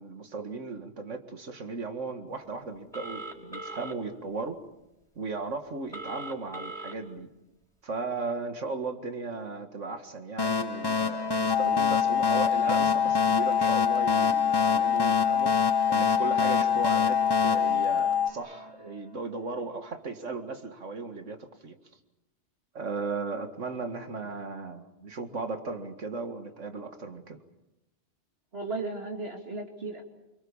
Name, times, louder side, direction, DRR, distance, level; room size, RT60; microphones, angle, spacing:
voice 1, 0.0-4.6 5.2-7.3 7.8-21.8 22.7-27.4, right 3 dB, 80° right, 7 dB, 2.3 m, -36 dB
Telephone, 2.9-3.9 5.9-6.9, right 2 dB, 5° left, 5.1 m, -39 dB
sound 1, 10.4-18.7, left 4 dB, 20° left, 0.9 m, -29 dB
sound 2, 11.5-18.3, left 9 dB, 85° left, 1.4 m, -25 dB
voice 2, 28.5-30.0, right 3 dB, 55° right, 2 dB, 3.0 m, -35 dB
27.0 x 25.0 x 7.3 m, 0.94 s
omnidirectional pair, 1.2 m